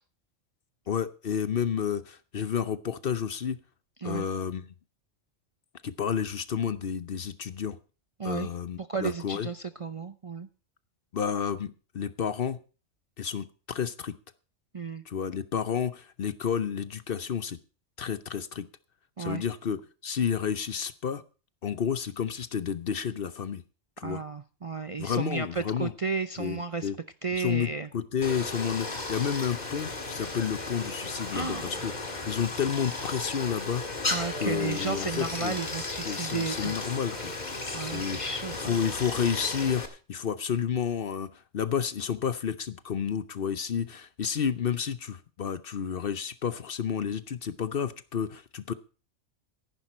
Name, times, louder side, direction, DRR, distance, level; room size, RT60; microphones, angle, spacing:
voice 1, 0.9-3.6 4.0-4.6 5.8-7.8 8.2-9.5 11.1-12.6 13.2-14.2 15.1-17.6 18.0-18.7 19.2-19.8 20.0-21.2 21.6-23.6 24.0-24.2 25.0-25.9 26.4-27.0 27.4-31.9 32.2-33.8 34.4-35.6 36.0-37.3 37.8-38.2 38.7-48.7, left 7 dB, 55° left, 14 dB, 0.9 m, -31 dB
voice 2, 8.8-10.5 14.7-15.0 19.2-19.4 24.0-26.9 27.2-27.9 31.3-31.8 34.1-36.8 37.7-38.7, right 4 dB, 40° right, 10 dB, 0.5 m, -33 dB
Stream, 28.2-39.9, left 2 dB, 35° left, 1.9 m, -35 dB
14.5 x 11.0 x 4.3 m, 0.35 s
omnidirectional pair, 1.3 m